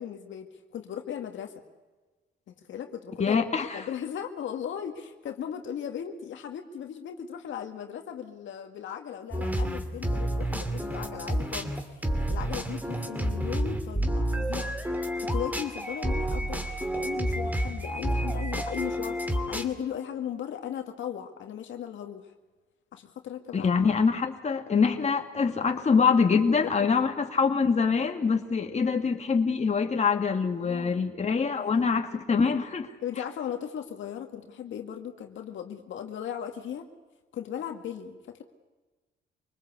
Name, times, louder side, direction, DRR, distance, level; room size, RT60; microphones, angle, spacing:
voice 1, 0.0-1.6 2.5-14.7 15.2-22.3 22.9-23.7 26.5-26.9 30.6-31.0 31.6-32.1 33.0-36.9 37.3-38.4, left 9 dB, 70° left, 4 dB, 2.1 m, -37 dB
voice 2, 3.2-3.8 23.5-32.9, left 5 dB, 35° left, 4 dB, 2.4 m, -24 dB
sound 1, 9.3-19.7, equal, 10° right, 2.5 m, -30 dB
25.0 x 19.5 x 8.3 m, 1.2 s
cardioid pair, 90°, 20 cm